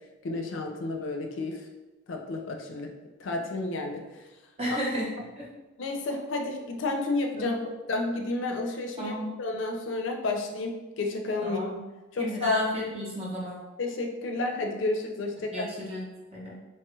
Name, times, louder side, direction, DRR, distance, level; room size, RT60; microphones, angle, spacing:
voice 1, 0.2-1.6 2.1-2.9 3.2-4.0 4.7-4.8 5.8-7.5 7.9-11.6 12.1-12.6 13.8-15.7, left 3 dB, 75° left, 2 dB, 0.4 m, -31 dB
voice 2, 4.6-5.5 7.4-7.6 9.0-9.3 11.4-11.8 12.2-13.6 15.5-16.1 16.3-16.6, equal, 30° right, -4 dB, 0.7 m, -33 dB
2.9 x 2.3 x 3.0 m, 1.1 s
head